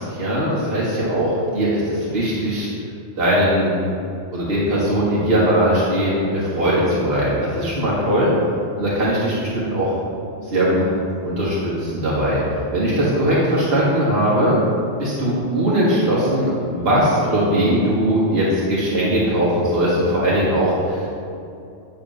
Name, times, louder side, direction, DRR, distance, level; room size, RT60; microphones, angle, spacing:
voice 1, 0.0-2.7 3.2-3.7 4.3-8.3 8.8-9.9 10.4-10.9 11.2-14.6 15.0-21.1, equal, 55° right, -8 dB, 1.8 m, -20 dB
9.7 x 3.6 x 6.2 m, 2.6 s
omnidirectional pair, 1.2 m